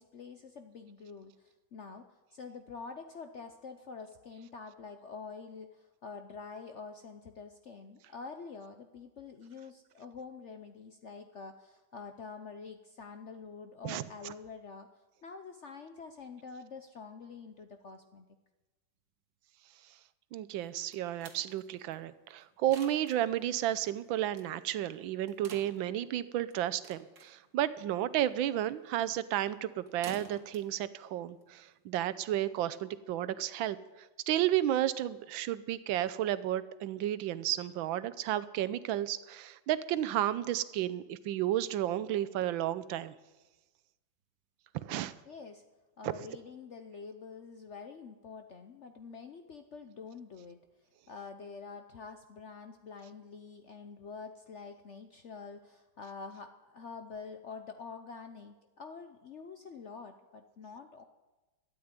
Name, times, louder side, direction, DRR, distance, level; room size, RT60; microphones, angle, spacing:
voice 1, 0.0-14.9 15.2-18.3 45.2-45.6 46.0-50.6 51.1-61.0, left 5 dB, 60° left, 7 dB, 0.7 m, -47 dB
voice 2, 13.8-14.3 20.3-33.8 34.3-43.1 44.7-45.1 46.0-46.1, right 12 dB, 90° right, 15 dB, 1.4 m, -32 dB
sound 1, 20.6-32.1, right 5 dB, 55° right, 1.9 m, -55 dB
13.0 x 9.3 x 9.6 m, 1.1 s
omnidirectional pair, 2.1 m